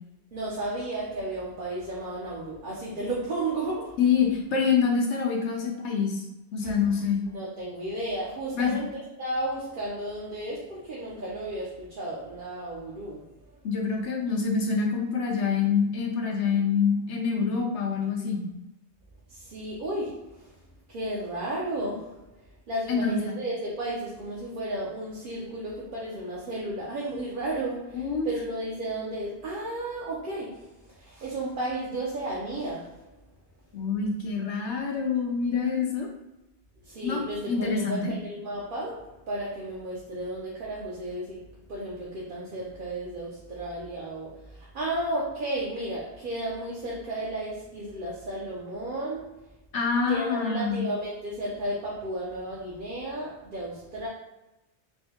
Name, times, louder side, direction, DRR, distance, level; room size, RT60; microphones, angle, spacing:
voice 1, 0.3-4.0 6.6-6.7 7.3-13.3 19.3-20.5 20.9-22.3 22.7-33.1 36.8-49.4 50.1-54.1, right 1 dB, 55° right, -6 dB, 0.8 m, -33 dB
voice 2, 4.0-6.2 6.5-7.2 8.5-8.8 13.6-18.5 22.9-23.3 27.9-28.3 33.7-36.1 37.0-38.1 49.7-50.8, left 5 dB, 85° left, 1 dB, 1.0 m, -26 dB
4.5 x 2.1 x 2.8 m, 0.95 s
omnidirectional pair, 1.1 m